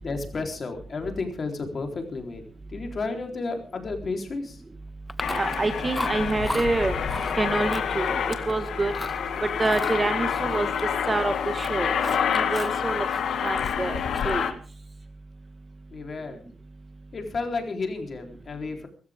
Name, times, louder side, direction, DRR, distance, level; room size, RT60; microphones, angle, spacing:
voice 1, 0.0-2.4 2.7-4.6 15.9-16.4 17.1-18.9, left 3 dB, 35° left, 4 dB, 3.8 m, -32 dB
Chewing mastication, 5.1-5.6 5.9-6.7 7.1-7.4 7.7-8.5 8.9-9.2 9.6-11.3 11.5-12.8 13.1-14.4, left 1 dB, 10° left, 0.7 m, -35 dB
Aircraft, 5.2-14.5, left 7 dB, 65° left, 1.9 m, -28 dB
voice 2, 5.3-8.9 9.4-10.7 11.1-11.9 12.3-13.0 13.4-14.0 14.2-14.6, right 2 dB, 20° right, 9 dB, 1.6 m, -27 dB
23.5 x 14.5 x 3.7 m, 0.38 s
cardioid pair, 135°, 0 cm